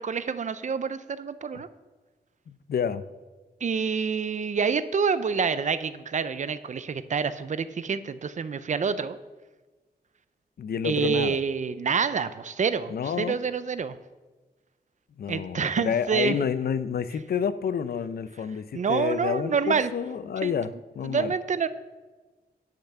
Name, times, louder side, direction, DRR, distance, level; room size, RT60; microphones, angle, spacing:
voice 1, 0.0-1.7 3.6-9.2 10.8-14.0 15.3-16.4 18.7-19.9 20.4-20.5 21.0-21.7, right 6 dB, 50° right, 13 dB, 0.5 m, -27 dB
voice 2, 2.5-3.0 10.6-11.4 12.9-13.4 15.2-21.3, left 7 dB, 70° left, 14 dB, 0.5 m, -29 dB
10.5 x 5.8 x 6.6 m, 1.3 s
wide cardioid pair, 145°, 17 cm